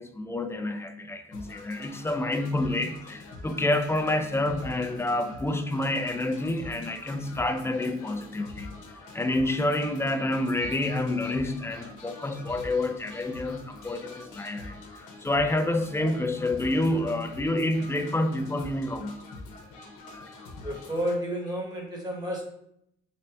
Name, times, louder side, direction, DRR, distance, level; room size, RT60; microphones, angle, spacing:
voice 1, 0.0-8.7 9.1-19.2 20.1-20.3, left 1 dB, 10° left, 7 dB, 0.4 m, -28 dB
sound 1, 1.3-21.2, left 2 dB, 80° left, 0.8 m, -45 dB
voice 2, 20.6-22.4, equal, 15° right, -1 dB, 1.1 m, -31 dB
3.4 x 2.7 x 3.3 m, 0.75 s
cardioid pair, 90°, 30 cm